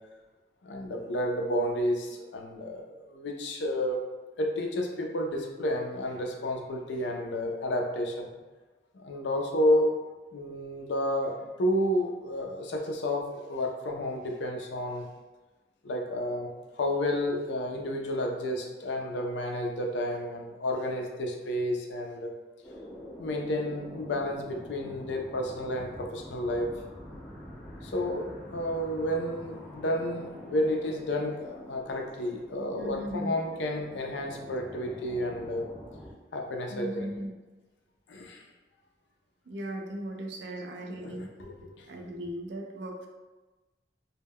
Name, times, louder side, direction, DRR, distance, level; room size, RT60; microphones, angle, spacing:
voice 1, 0.6-4.0 4.4-8.3 8.9-9.9 10.3-15.0 15.8-16.5 16.8-22.3 23.2-26.7 27.8-35.7 36.3-37.1 38.1-38.5 40.9-41.9, left 1 dB, 85° left, 2 dB, 0.4 m, -31 dB
sound 1, 22.6-36.1, equal, 10° left, 0.4 m, -46 dB
voice 2, 32.7-33.3 36.7-37.3 39.5-41.3 41.9-43.1, equal, 80° right, 2 dB, 0.4 m, -37 dB
2.2 x 2.1 x 3.5 m, 1.2 s
head